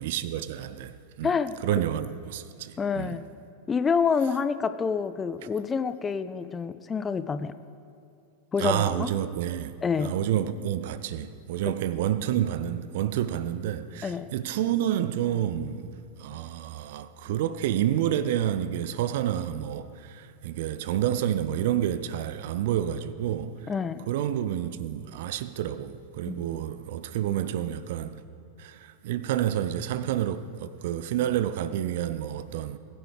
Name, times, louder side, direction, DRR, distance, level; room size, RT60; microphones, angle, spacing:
voice 1, 0.0-1.3 1.6-3.2 8.6-9.7 10.0-23.7 24.1-28.2 28.6-32.8, right 11 dB, 55° right, 0.5 m, -29 dB
voice 2, 1.2-1.5 2.8-3.2 3.7-7.5 8.5-9.1 9.8-10.1 14.0-14.3 23.7-24.0 26.3-26.4, left 6 dB, 20° left, 0.4 m, -27 dB
21.0 x 10.5 x 3.5 m
figure-of-eight pair, 90°, 0 cm